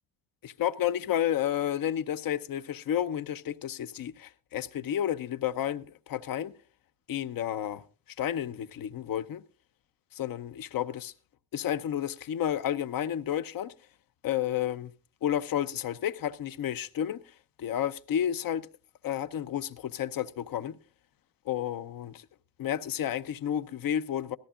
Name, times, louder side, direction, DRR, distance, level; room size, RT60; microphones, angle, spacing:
voice 1, 0.4-6.5 7.1-7.8 8.2-9.4 10.1-11.1 11.5-13.7 14.2-14.9 15.2-18.7 19.0-20.8 21.4-22.3 22.6-24.4, left 10 dB, 50° left, 0.8 m, -31 dB
18.0 x 14.0 x 2.5 m
cardioid pair, 90°, 45 cm